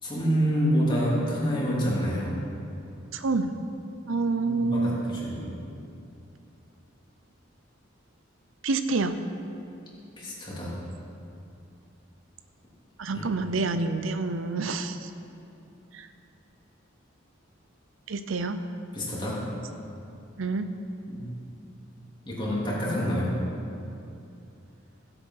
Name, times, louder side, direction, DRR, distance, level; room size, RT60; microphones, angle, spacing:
voice 1, 0.0-2.3 4.4-5.5 10.2-10.7 13.1-13.2 18.9-19.4 21.1-21.3 22.3-23.4, equal, 25° left, -6 dB, 3.0 m, -27 dB
voice 2, 3.1-3.5 4.1-5.0 8.6-9.2 13.0-15.1 15.9-16.1 18.1-18.6 20.4-20.7, right 3 dB, 80° right, 9 dB, 0.7 m, -27 dB
16.5 x 8.1 x 5.7 m, 2.7 s
head